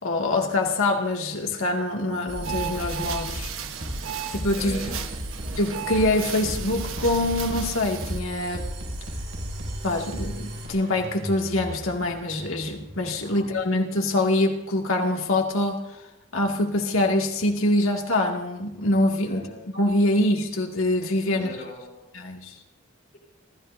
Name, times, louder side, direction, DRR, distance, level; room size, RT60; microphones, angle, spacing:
voice 1, 0.0-3.5 4.3-4.8 5.6-8.7 9.8-15.8 16.3-19.4 19.7-21.5 22.1-22.5, left 1 dB, 90° left, 2.3 m, -24 dB
sound 1, 2.3-10.7, right 1 dB, 70° right, 6.4 m, -35 dB
sound 2, 2.4-8.2, right 7 dB, 90° right, 1.3 m, -35 dB
voice 2, 4.5-5.0 13.2-13.5 19.2-19.6 21.3-22.1, left 1 dB, 55° left, 4.7 m, -39 dB
Engine, 5.7-13.5, equal, 50° right, 3.3 m, -41 dB
29.5 x 14.0 x 2.7 m
head